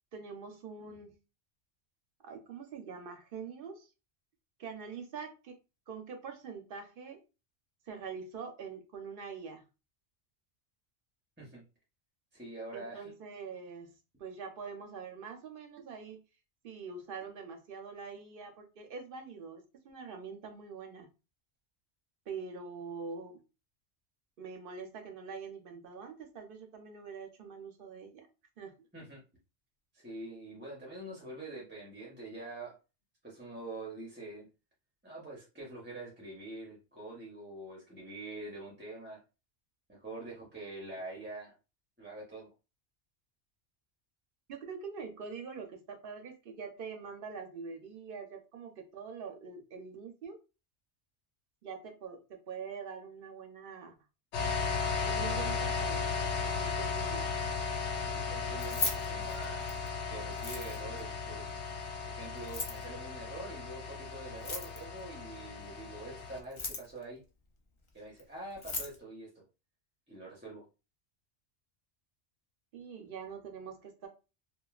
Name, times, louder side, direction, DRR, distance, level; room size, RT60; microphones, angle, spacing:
voice 1, 0.1-1.2 2.2-3.9 4.6-5.6 5.9-7.2 7.9-9.6 12.7-13.9 14.2-16.2 16.6-21.1 22.3-23.4 24.4-28.3 28.6-28.7 44.5-50.4 51.6-53.9 55.0-57.3 72.7-74.1, right 5 dB, 60° right, 4 dB, 0.7 m, -44 dB
voice 2, 12.3-13.1 28.9-29.2 30.0-32.8 33.2-34.5 35.0-39.2 39.9-41.5 42.0-42.5 58.1-59.7 60.1-61.4 62.0-67.2 67.9-69.4 70.1-70.6, right 2 dB, 10° right, -4 dB, 0.6 m, -45 dB
sound 1, 54.3-66.4, left 5 dB, 80° left, 0.9 m, -36 dB
Keys jangling, 58.5-59.9 60.3-61.0 62.4-62.8 64.3-65.0 66.4-67.0 68.2-68.3 68.5-69.0, left 4 dB, 50° left, 0.3 m, -37 dB
3.0 x 2.2 x 2.3 m, 0.30 s
omnidirectional pair, 1.2 m